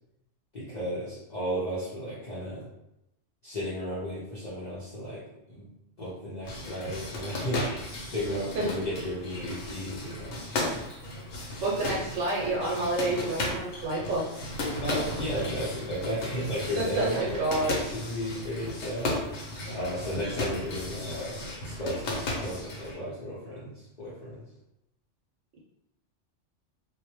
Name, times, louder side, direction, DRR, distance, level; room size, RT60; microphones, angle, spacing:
voice 1, 0.5-2.7 3.4-5.2 5.5-5.7 6.0-10.6 11.5-11.6 14.8-19.1 19.7-24.4, equal, 50° left, -8 dB, 0.6 m, -34 dB
sound 1, 6.4-23.0, left 2 dB, 75° left, 0.9 m, -35 dB
voice 2, 11.6-14.2 16.8-17.7, right 2 dB, 85° right, -4 dB, 0.9 m, -29 dB
2.2 x 2.0 x 2.9 m, 0.86 s
omnidirectional pair, 1.2 m